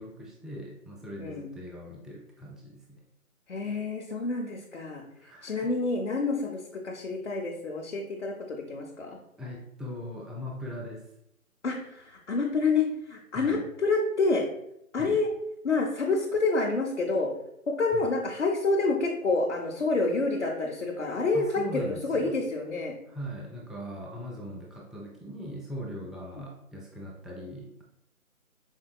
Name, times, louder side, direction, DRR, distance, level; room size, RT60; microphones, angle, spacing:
voice 1, 0.0-3.0 5.2-5.7 9.4-11.1 13.3-13.7 14.9-15.2 17.9-18.0 21.3-22.4 23.1-27.8, equal, ahead, -3 dB, 0.3 m, -40 dB
voice 2, 1.2-1.5 3.5-5.0 5.4-9.2 11.6-14.4 14.9-15.3 15.6-17.3 17.7-23.0, left 3 dB, 55° left, -1 dB, 0.5 m, -28 dB
4.4 x 2.3 x 2.3 m, 0.77 s
figure-of-eight pair, 175°, 43 cm